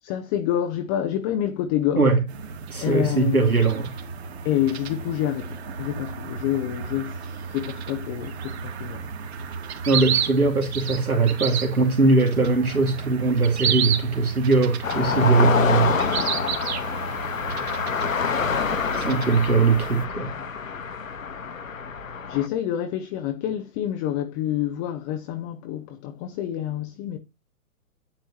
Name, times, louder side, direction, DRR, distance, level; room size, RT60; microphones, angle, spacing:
voice 1, 0.0-2.0 2.8-3.5 4.4-9.1 22.3-27.2, left 11 dB, 15° left, 0.7 m, -27 dB
sound 1, 2.3-20.0, right 7 dB, 50° right, 2.3 m, -32 dB
voice 2, 2.7-3.9 9.9-16.0 18.9-20.3, right 3 dB, 85° right, 2.6 m, -20 dB
sound 2, 14.8-22.5, left 6 dB, 65° left, 1.5 m, -27 dB
10.0 x 8.7 x 3.0 m
figure-of-eight pair, 120°, 43 cm